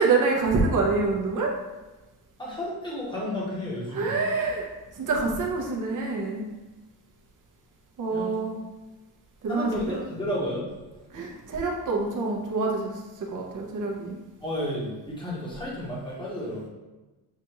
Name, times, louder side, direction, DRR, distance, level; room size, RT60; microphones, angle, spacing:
voice 1, 0.0-1.5 3.9-4.7 4.9-6.5 8.0-8.6 9.4-10.0 11.1-14.2, right 3 dB, 50° right, -1 dB, 0.8 m, -26 dB
voice 2, 2.4-4.2 8.1-8.4 9.5-10.6 11.2-11.3 14.4-14.9 15.2-16.6, left 1 dB, 10° left, -5 dB, 1.0 m, -32 dB
6.7 x 2.5 x 2.9 m, 1.1 s
cardioid pair, 165°, 39 cm